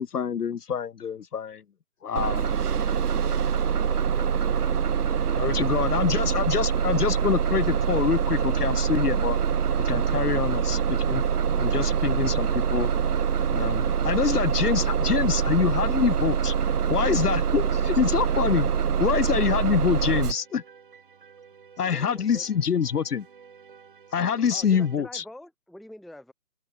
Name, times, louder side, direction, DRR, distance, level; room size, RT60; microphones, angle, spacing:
voice 1, 0.0-1.6 2.0-2.5 5.3-9.4 9.8-11.2 11.6-12.9 13.5-16.5 16.9-18.7 19.0-20.6 21.8-23.3 24.1-25.2, left 7 dB, 80° left, 1.0 m, -26 dB
Bus, 2.2-20.3, right 7 dB, 85° right, 1.0 m, -24 dB
voice 2, 3.1-3.5 3.8-5.5 6.9-7.0, left 5 dB, 60° left, 2.8 m, -48 dB
sound 1, 7.6-25.0, right 6 dB, 35° right, 3.3 m, -53 dB
voice 3, 21.8-22.5 24.5-26.3, left 1 dB, ahead, 0.7 m, -44 dB
hypercardioid pair, 175°, 45 cm